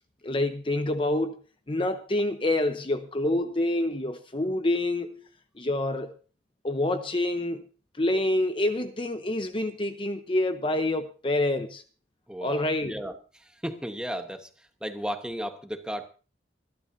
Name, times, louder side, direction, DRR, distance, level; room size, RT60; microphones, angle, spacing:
voice 1, 0.2-1.4 1.7-5.2 5.6-6.1 6.6-7.6 8.0-11.8 12.4-13.0, left 1 dB, 30° left, 0.8 m, -27 dB
voice 2, 12.3-13.1 13.6-14.5 14.8-16.1, equal, 5° right, 1.2 m, -34 dB
25.5 x 12.0 x 2.7 m
head